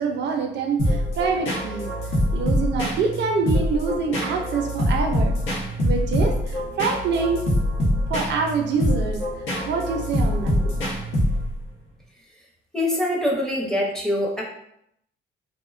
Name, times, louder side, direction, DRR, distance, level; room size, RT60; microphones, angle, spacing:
voice 1, 0.0-1.9 2.3-5.3 5.8-7.4 8.1-9.2 9.7-10.6, right 5 dB, 65° right, 3 dB, 0.4 m, -25 dB
Urban Flow Loop, 0.8-11.7, equal, 75° left, 0.8 m, -24 dB
voice 2, 12.7-14.4, left 1 dB, 5° left, -2 dB, 0.6 m, -24 dB
2.5 x 2.1 x 2.4 m, 0.76 s
cardioid pair, 90°, 20 cm